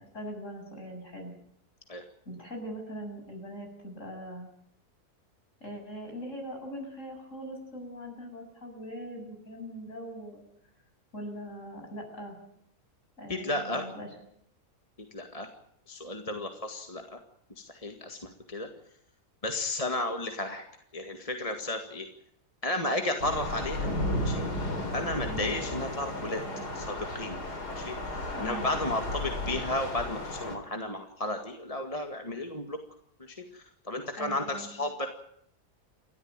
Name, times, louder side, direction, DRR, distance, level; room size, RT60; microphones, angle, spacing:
voice 1, 0.0-1.3 2.3-4.5 5.6-10.4 11.1-12.4 13.2-14.1 25.3-25.6 28.3-29.0 34.2-34.7, equal, 50° left, 3 dB, 7.8 m, -41 dB
voice 2, 13.3-13.9 15.1-15.5 15.9-17.2 17.6-18.7 19.4-20.6 20.9-22.1 22.6-23.9 24.2-24.5 24.9-26.4 26.7-27.4 27.7-32.8 33.2-35.1, left 2 dB, 20° left, 4 dB, 2.0 m, -33 dB
Thunder / Rain, 23.2-30.6, left 1 dB, 80° left, 4.7 m, -34 dB
29.5 x 13.0 x 9.0 m, 0.71 s
omnidirectional pair, 1.7 m